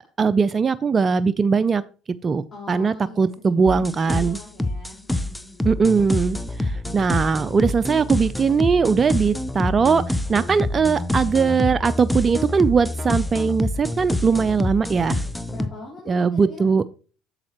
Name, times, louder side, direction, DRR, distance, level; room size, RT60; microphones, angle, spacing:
voice 1, 0.2-1.8 2.2-4.4 5.6-15.2 16.1-16.8, right 5 dB, 35° right, 16 dB, 0.3 m, -20 dB
voice 2, 2.5-5.8 15.5-16.7, left 2 dB, 30° left, -6 dB, 3.8 m, -42 dB
sound 1, 3.7-15.7, left 1 dB, 10° left, 0.7 m, -27 dB
8.7 x 7.2 x 2.9 m, 0.38 s
hypercardioid pair, 70°, 0 cm